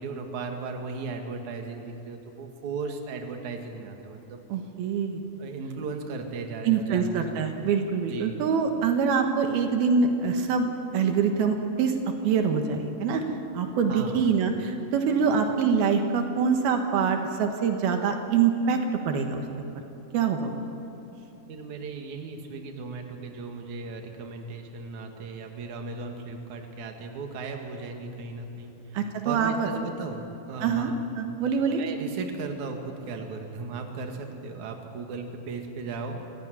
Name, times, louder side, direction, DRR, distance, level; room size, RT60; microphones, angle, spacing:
voice 1, 0.0-4.4 5.4-7.2 8.1-8.4 13.9-14.2 21.5-31.0 31.6-36.3, right 4 dB, 55° right, 3 dB, 3.1 m, -36 dB
voice 2, 4.5-5.2 6.6-10.7 10.9-12.0 12.2-13.2 13.5-18.8 19.1-19.4 20.1-20.6 28.9-29.7 30.6-30.9 31.2-31.8, right 6 dB, 80° right, 4 dB, 3.4 m, -25 dB
26.5 x 16.5 x 9.6 m, 2.9 s
omnidirectional pair, 4.3 m